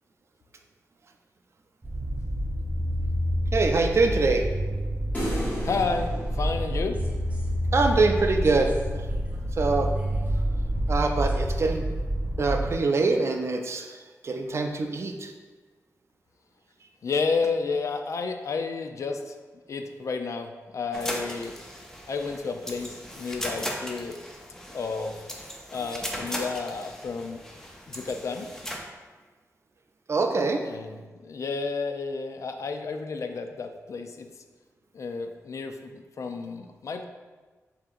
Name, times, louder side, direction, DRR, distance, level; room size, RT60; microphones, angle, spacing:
sound 1, 1.8-12.7, equal, 25° right, 0.9 m, -28 dB
voice 1, 3.5-4.5 7.7-9.0 9.6-9.9 10.9-11.9 12.4-14.0 14.2-15.3 30.1-30.6, right 3 dB, 50° right, 4 dB, 0.4 m, -24 dB
sound 2, 5.1-7.5, equal, 30° left, 1.5 m, -35 dB
voice 2, 5.6-7.0 17.0-19.4 19.7-21.6 22.1-24.2 24.7-25.1 25.7-27.4 27.9-28.5 30.7-34.3 34.9-37.0, left 4 dB, 60° left, 6 dB, 0.4 m, -31 dB
sound 3, 20.9-28.8, equal, 10° left, 0.5 m, -37 dB
7.3 x 2.8 x 2.5 m, 1.3 s
wide cardioid pair, 120°, 6 cm